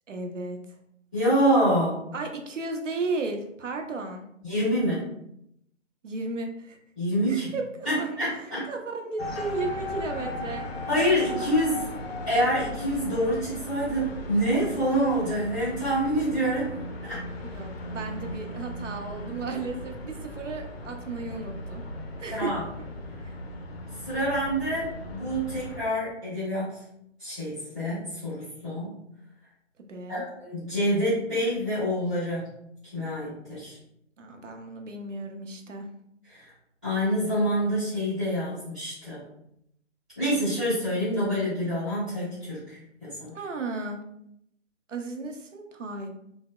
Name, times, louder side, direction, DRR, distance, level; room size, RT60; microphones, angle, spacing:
voice 1, 0.1-0.6 2.1-4.2 6.0-6.8 7.3-8.2 8.7-10.7 17.5-21.8 22.2-22.5 23.2-23.3 29.9-30.2 34.2-35.9 43.3-44.0 44.9-46.1, right 3 dB, 75° right, 4 dB, 0.6 m, -34 dB
voice 2, 1.1-2.0 4.4-5.1 7.0-7.5 7.8-8.7 10.9-11.9 12.3-16.7 17.0-17.2 22.3-22.6 24.0-26.8 27.2-28.9 30.1-32.5 32.9-33.8 36.3-36.5 36.8-39.2 40.2-43.3, equal, ahead, -16 dB, 0.7 m, -27 dB
sound 1, 9.2-25.8, left 1 dB, 55° left, 0.5 m, -37 dB
3.2 x 2.0 x 2.2 m, 0.77 s
figure-of-eight pair, 145°, 37 cm